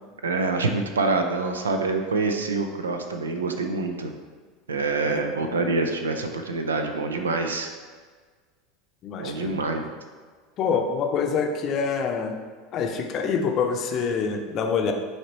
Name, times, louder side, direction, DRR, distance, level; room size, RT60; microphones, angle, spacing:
voice 1, 0.2-4.1 4.7-7.7 9.2-9.8, right 3 dB, 85° right, 5 dB, 0.4 m, -26 dB
voice 2, 5.0-5.6 9.0-9.5 10.6-12.4 12.7-14.9, left 5 dB, 45° left, 4 dB, 0.6 m, -26 dB
5.7 x 3.0 x 3.0 m, 1.5 s
hypercardioid pair, 85°, 0 cm